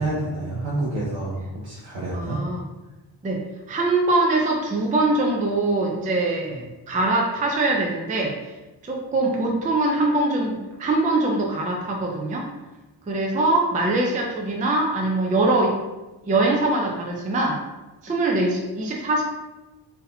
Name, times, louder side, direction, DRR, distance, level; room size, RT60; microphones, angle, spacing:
voice 1, 0.0-2.4, right 2 dB, 80° right, -7 dB, 0.9 m, -28 dB
voice 2, 2.1-2.6 3.2-3.4 3.7-8.3 8.8-12.5 13.1-15.8 16.3-17.6 18.0-19.2, right 2 dB, 20° right, -1 dB, 0.3 m, -22 dB
4.0 x 2.7 x 2.6 m, 1.1 s
wide cardioid pair, 150°, 44 cm